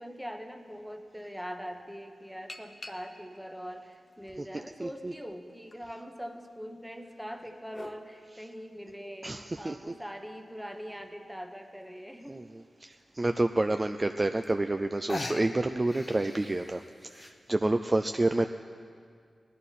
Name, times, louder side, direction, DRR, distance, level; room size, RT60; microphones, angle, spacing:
voice 1, 0.0-12.4 18.1-18.5, equal, ahead, 5 dB, 1.0 m, -42 dB
sound 1, 0.8-0.9 2.5-3.4 4.1-5.1 5.7-5.8 7.0-8.0 9.7-9.8 10.3-10.4 10.6-10.7 11.0-11.3 12.3-12.4 12.9-13.0 14.1-14.2 14.4-14.8 15.1-17.4, left 2 dB, 40° left, 0.8 m, -42 dB
voice 2, 4.4-5.1 9.2-9.8 12.3-12.4 12.8-18.5, right 2 dB, 25° right, 7 dB, 0.3 m, -29 dB
18.0 x 12.0 x 4.2 m, 2.2 s
wide cardioid pair, 85°, 0 cm